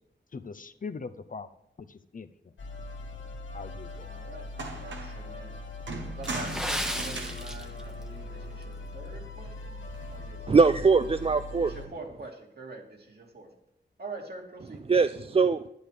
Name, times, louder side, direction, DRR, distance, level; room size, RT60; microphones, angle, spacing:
voice 1, 0.3-1.5 1.8-2.5 3.5-4.1, left 4 dB, 45° left, 10 dB, 0.7 m, -41 dB
sound 1, 2.6-11.9, left 2 dB, 85° left, 1.7 m, -41 dB
voice 2, 4.0-4.5 4.7-5.6 6.1-9.8 10.1-10.7 11.6-13.5 14.0-14.8, right 3 dB, 60° right, 0 dB, 2.8 m, -45 dB
sound 2, 4.1-4.2 4.5-5.3 5.9-8.6 9.8-10.3, right 3 dB, 80° right, 1.8 m, -40 dB
Water / Splash splatter, 6.2-8.1 8.4-8.6 9.2-9.4 9.9-10.0, equal, 5° right, 1.1 m, -34 dB
voice 3, 10.5-11.7 14.9-15.7, right 4 dB, 30° right, 12 dB, 0.4 m, -22 dB
11.5 x 9.7 x 5.0 m, 0.81 s
wide cardioid pair, 90°, 19 cm